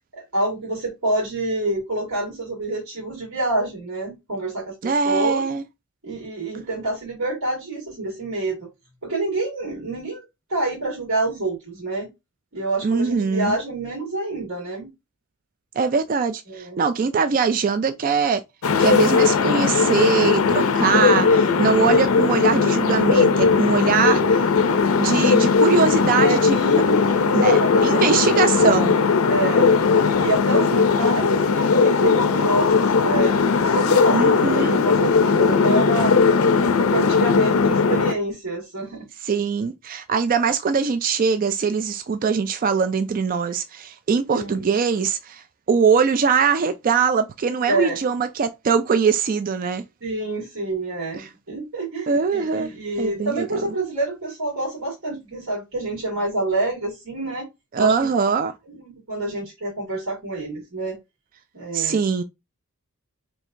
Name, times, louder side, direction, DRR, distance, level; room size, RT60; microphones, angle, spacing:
voice 1, 0.1-5.5 6.0-8.7 9.0-10.2 10.5-12.1 12.5-14.9 16.5-16.8 21.6-22.0 24.0-24.4 25.4-25.5 26.2-28.3 28.7-28.8 29.3-29.7 30.0-33.3 33.7-36.2 36.6-39.1 44.3-44.6 47.7-48.0 50.0-57.5 57.8-57.9 58.2-58.3 58.7-61.0 61.5-62.0, right 2 dB, 75° right, 2.0 m, -27 dB
voice 2, 4.8-5.6 12.8-13.5 15.8-18.4 18.8-24.7 25.0-26.6 27.3-29.0 34.1-34.8 39.2-49.8 51.1-51.3 52.1-52.7 53.0-53.4 57.7-58.5 61.7-62.2, right 5 dB, 40° right, 0.3 m, -22 dB
sound 1, 18.6-38.1, left 5 dB, 70° left, 0.5 m, -18 dB
4.6 x 3.1 x 2.6 m
head